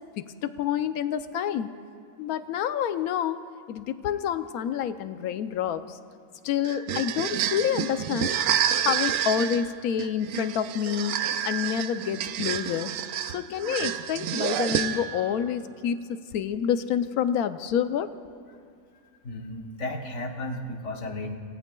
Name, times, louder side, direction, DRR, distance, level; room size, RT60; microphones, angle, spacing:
voice 1, 0.0-1.7 2.2-3.4 3.7-6.0 6.4-8.3 8.8-11.2 11.4-12.9 13.3-18.1, left 9 dB, 85° left, 11 dB, 1.1 m, -28 dB
sound 1, 6.6-15.3, right 9 dB, 70° right, 0.9 m, -29 dB
voice 2, 19.2-21.4, left 1 dB, 60° left, 3 dB, 1.4 m, -34 dB
28.5 x 17.0 x 2.3 m, 2.3 s
omnidirectional pair, 1.5 m